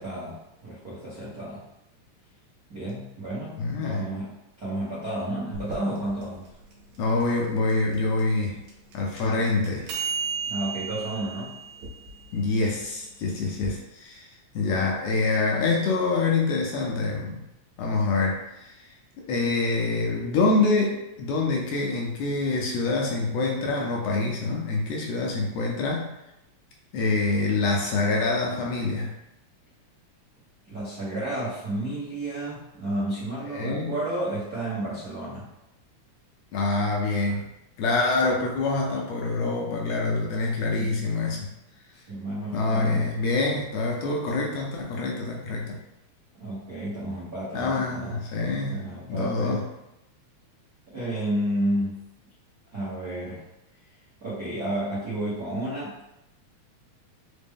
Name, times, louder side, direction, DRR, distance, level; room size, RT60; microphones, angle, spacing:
voice 1, 0.0-1.6 2.7-4.3 4.6-6.4 10.5-11.5 14.6-14.8 30.7-35.5 40.8-40.9 41.9-43.1 46.3-48.2 48.7-49.6 50.9-52.0 52.7-53.4 54.2-56.0, right 1 dB, 70° right, -11 dB, 0.8 m, -31 dB
voice 2, 3.6-4.0 7.0-8.6 8.9-9.9 12.3-17.4 17.8-18.9 19.2-26.1 26.9-29.1 33.5-33.9 36.5-37.5 37.8-41.5 42.5-45.8 47.5-48.8 49.1-49.6, left 3 dB, 80° left, -1 dB, 1.6 m, -26 dB
sound 1, 5.5-13.7, right 5 dB, 85° right, 2.2 m, -36 dB
5.0 x 2.1 x 3.4 m, 0.88 s
omnidirectional pair, 3.3 m